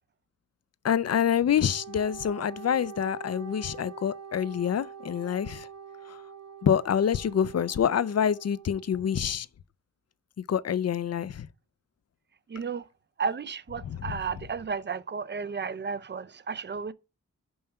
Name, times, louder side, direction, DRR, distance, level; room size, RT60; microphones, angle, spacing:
voice 1, 0.8-5.7 6.1-6.2 6.6-9.5 10.5-11.5 13.8-14.2, left 8 dB, 55° left, 0.5 m, -26 dB
Wind instrument woodwind instrument, 1.6-9.3, right 7 dB, 60° right, 0.9 m, -45 dB
voice 2, 12.5-12.8 13.2-16.9, right 5 dB, 35° right, 0.5 m, -33 dB
5.5 x 5.4 x 5.6 m
wide cardioid pair, 85°, 30 cm